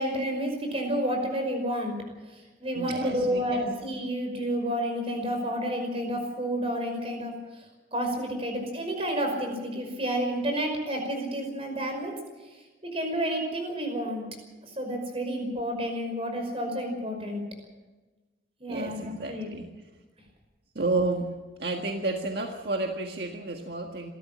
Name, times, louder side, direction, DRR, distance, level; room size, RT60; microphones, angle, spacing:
voice 1, 0.0-1.9 2.3-7.6 7.9-12.2 12.8-14.2 14.6-17.4 18.6-19.5, equal, 35° right, 4 dB, 5.4 m, -30 dB
voice 2, 2.7-3.7 18.7-19.7 20.7-21.3 21.6-24.1, right 2 dB, 65° right, 2 dB, 1.7 m, -31 dB
27.5 x 13.5 x 7.5 m, 1.2 s
head